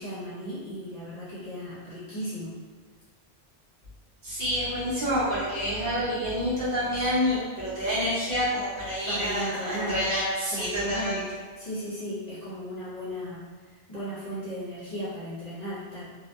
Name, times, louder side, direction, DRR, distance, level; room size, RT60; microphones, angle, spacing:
voice 1, 0.0-2.6 9.1-10.0 10.5-11.2 11.6-13.4 13.9-16.0, equal, 40° left, -11 dB, 0.8 m, -35 dB
voice 2, 4.2-11.2, equal, 55° right, -9 dB, 0.8 m, -28 dB
2.7 x 2.2 x 2.2 m, 1.5 s
omnidirectional pair, 1.2 m